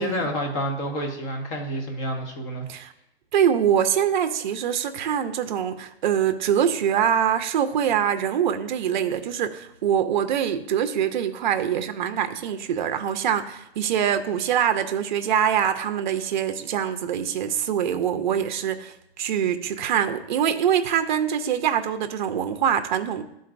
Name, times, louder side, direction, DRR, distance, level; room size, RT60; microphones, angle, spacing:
voice 1, 0.0-2.6, equal, 30° left, 2 dB, 1.1 m, -29 dB
voice 2, 3.3-23.2, right 9 dB, 45° right, 8 dB, 0.5 m, -24 dB
11.5 x 3.9 x 2.5 m, 0.82 s
hypercardioid pair, 145°, 32 cm